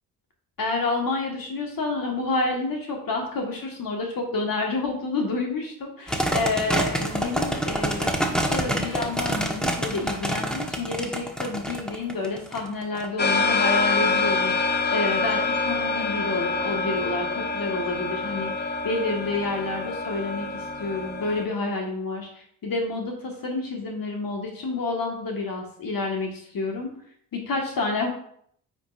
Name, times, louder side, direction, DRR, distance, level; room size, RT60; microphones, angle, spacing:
voice 1, 0.6-14.5 14.9-26.9 27.3-28.1, left 3 dB, 45° left, 1 dB, 1.8 m, -29 dB
sound 1, 6.1-13.1, right 1 dB, ahead, 1.3 m, -27 dB
sound 2, 13.2-21.4, left 3 dB, 20° left, 1.1 m, -26 dB
9.0 x 5.4 x 2.6 m, 0.64 s
hypercardioid pair, 45°, 46 cm